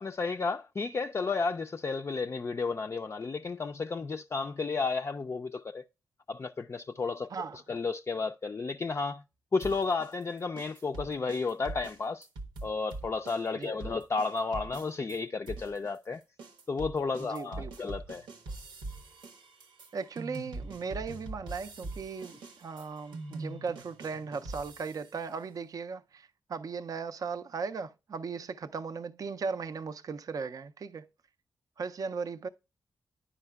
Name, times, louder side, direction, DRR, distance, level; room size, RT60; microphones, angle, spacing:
voice 1, 0.0-5.8 6.3-7.3 7.7-9.2 9.5-12.3 12.6-16.2 16.7-18.3, left 4 dB, 35° left, 0.3 m, -32 dB
sound 1, 9.6-15.2 15.5-25.2, right 2 dB, 85° right, 0.7 m, -43 dB
voice 2, 17.2-17.9 19.9-31.1 31.8-32.5, right 5 dB, 50° right, 0.4 m, -37 dB
9.8 x 4.9 x 2.2 m
supercardioid pair, 40°, 8 cm